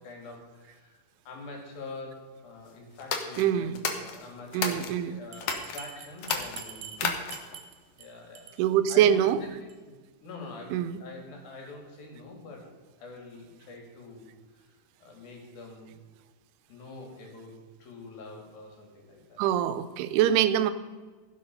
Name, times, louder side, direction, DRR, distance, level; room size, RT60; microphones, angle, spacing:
voice 1, 0.0-2.2 2.4-4.8 5.1-7.0 7.9-8.6 8.9-9.9 10.2-12.6 13.0-14.3 14.5-14.7 15.0-16.0 16.7-17.6 17.8-19.4, left 3 dB, 65° left, 0 dB, 4.2 m, -45 dB
sound 1, 3.0-5.0 5.4-5.8 6.2-7.6, left 6 dB, 85° left, 1.3 m, -32 dB
voice 2, 3.4-3.8 4.5-5.2 7.0-7.1 8.6-9.4 10.7-11.0 19.4-20.7, right 10 dB, 85° right, 12 dB, 2.7 m, -24 dB
Bell, 5.3-8.1 8.4-8.6 8.9-9.0 9.3-9.4 9.7-9.8, right 8 dB, 70° right, 3.0 m, -44 dB
15.5 x 7.3 x 5.5 m, 1.4 s
omnidirectional pair, 4.5 m